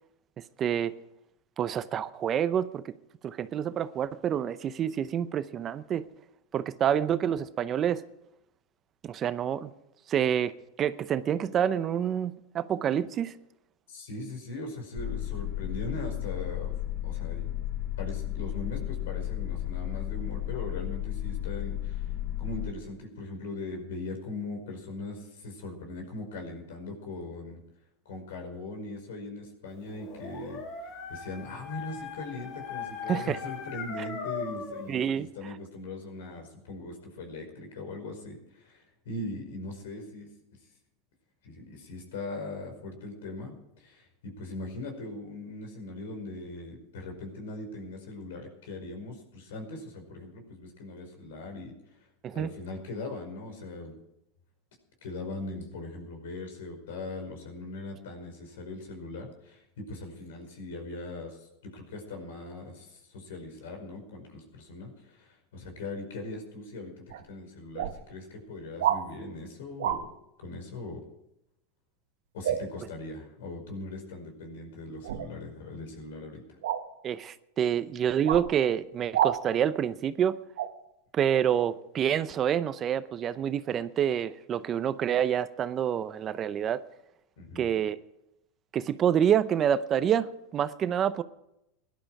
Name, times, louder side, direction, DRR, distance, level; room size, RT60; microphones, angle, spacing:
voice 1, 0.6-0.9 1.6-2.9 3.2-6.0 6.5-8.0 9.0-9.7 10.1-13.3 33.1-33.4 34.9-35.3 52.2-52.5 77.0-80.4 81.1-86.8 87.6-88.0 88.7-91.2, right 9 dB, 30° right, 0.7 m, -27 dB
voice 2, 13.9-16.8 17.0-17.5 18.0-22.1 22.4-27.6 28.0-30.6 31.1-40.3 41.4-52.0 52.3-54.0 55.0-70.1 70.4-71.0 72.3-76.6 87.4-87.7, left 2 dB, 80° left, 4.9 m, -40 dB
sound 1, 15.0-22.7, left 13 dB, 30° left, 0.7 m, -33 dB
Dog, 29.9-34.9, left 6 dB, 45° left, 2.9 m, -39 dB
sound 2, 67.1-67.2 67.7-68.0 68.8-69.0 69.8-70.0 72.4-72.6 75.0-75.3 76.6-76.8 78.2-78.5 79.1-79.4 80.6-80.7, right 11 dB, 85° right, 1.2 m, -27 dB
17.5 x 11.5 x 4.8 m
supercardioid pair, 125°, 0 cm